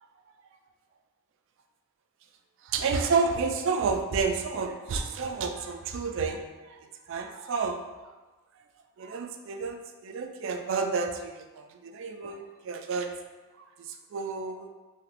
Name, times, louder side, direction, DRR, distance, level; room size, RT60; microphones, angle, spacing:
voice 1, 2.7-6.4 7.1-7.8 9.0-13.1 14.1-14.7, right 4 dB, 60° right, 6 dB, 0.3 m, -30 dB
3.4 x 2.8 x 2.5 m, 1.2 s
head